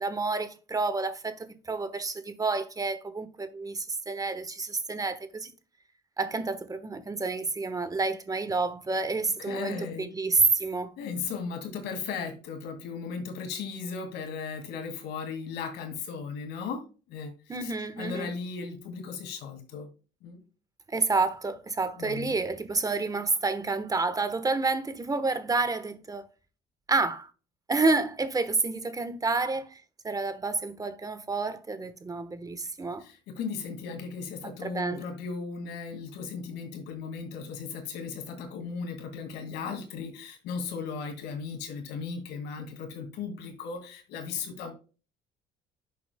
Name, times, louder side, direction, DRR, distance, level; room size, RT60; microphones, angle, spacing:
voice 1, 0.0-5.5 6.2-11.0 17.5-18.3 20.9-26.3 26.9-27.3 27.7-33.0 34.4-35.0, right 3 dB, 20° right, 1.1 m, -29 dB
voice 2, 9.4-10.1 11.0-19.9 20.2-20.4 22.0-22.4 33.0-44.7, left 5 dB, 85° left, 2.2 m, -36 dB
10.0 x 7.0 x 2.2 m
cardioid pair, 110°, 17 cm